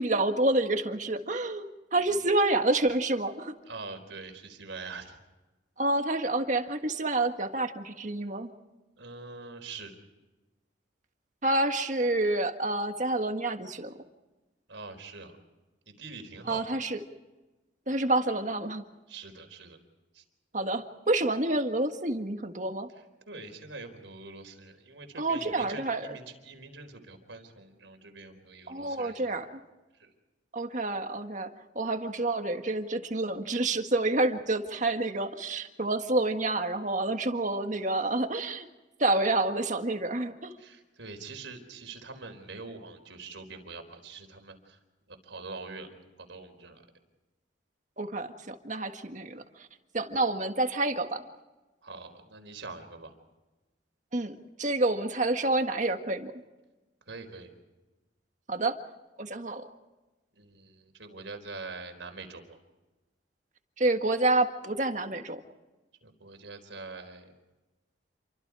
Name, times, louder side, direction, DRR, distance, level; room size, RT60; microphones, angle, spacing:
voice 1, 0.0-3.5 5.8-8.5 11.4-14.0 16.5-17.0 17.9-18.8 20.5-22.9 25.2-26.2 28.7-29.5 30.5-31.5 31.7-38.7 39.0-40.5 48.0-49.4 49.9-51.2 54.1-56.3 58.5-58.8 59.2-59.7 63.8-65.4, right 2 dB, 40° right, 6 dB, 1.7 m, -28 dB
voice 2, 3.7-5.2 9.0-9.9 14.7-15.4 15.9-16.7 19.1-19.8 20.1-20.2 23.3-29.3 30.0-30.1 40.6-44.8 45.2-45.9 46.2-46.8 51.8-53.1 57.1-57.5 60.4-62.6 66.0-67.3, right 3 dB, 90° right, 6 dB, 4.3 m, -44 dB
29.0 x 24.5 x 4.8 m, 1.1 s
head